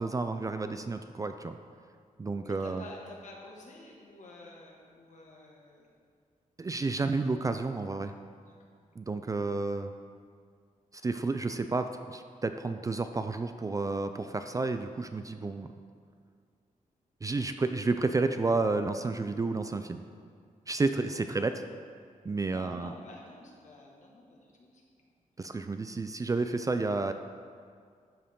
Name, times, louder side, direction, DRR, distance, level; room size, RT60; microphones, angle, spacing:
voice 1, 0.0-1.6 2.2-2.8 6.6-8.1 9.0-9.9 11.0-15.7 17.2-20.0 20.7-21.5 22.2-22.9 25.4-27.1, right 3 dB, 25° right, 8 dB, 0.3 m, -31 dB
voice 2, 2.4-5.9 8.4-8.8 21.1-21.5 22.5-25.1, left 2 dB, 60° left, -2 dB, 1.8 m, -50 dB
12.0 x 6.8 x 3.7 m, 2.1 s
wide cardioid pair, 120°, 14 cm